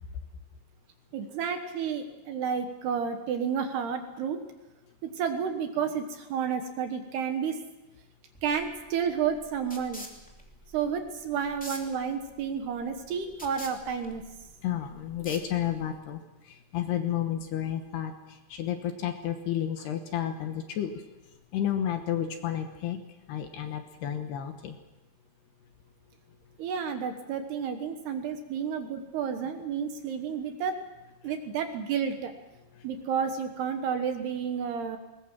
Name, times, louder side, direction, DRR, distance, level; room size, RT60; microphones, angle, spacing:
voice 1, 1.1-4.5 5.0-7.6 8.4-10.1 10.7-14.2 26.6-30.8 31.2-32.3 32.8-35.0, right 7 dB, 65° right, 6 dB, 2.9 m, -31 dB
sound 1, 8.3-16.0, equal, 5° left, 1.0 m, -47 dB
voice 2, 14.6-16.2 16.5-21.0 21.5-23.0 23.3-24.7, left 10 dB, 70° left, 6 dB, 2.9 m, -31 dB
21.0 x 20.0 x 7.4 m, 1.1 s
omnidirectional pair, 5.6 m